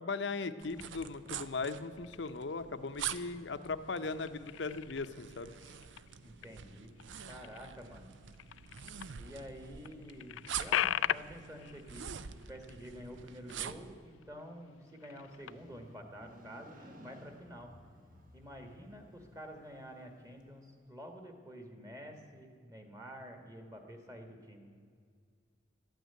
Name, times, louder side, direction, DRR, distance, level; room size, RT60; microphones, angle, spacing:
voice 1, 0.0-5.5, left 4 dB, 65° left, 11 dB, 0.7 m, -38 dB
sound 1, 0.6-13.9, right 8 dB, 75° right, 0.6 m, -46 dB
sound 2, 0.8-1.4 1.9-2.5 3.0-3.7 4.0-9.2 9.6-9.7 9.8-13.9 14.1-14.4 14.8-15.9, left 11 dB, 85° left, 0.3 m, -40 dB
voice 2, 6.2-6.9 7.3-8.1 9.2-12.1 12.5-17.7 18.3-25.0, equal, 15° right, 5 dB, 1.6 m, -49 dB
Motorcycle, 14.9-20.9, equal, 45° right, 1.6 m, -58 dB
13.0 x 9.2 x 9.3 m, 2.2 s
head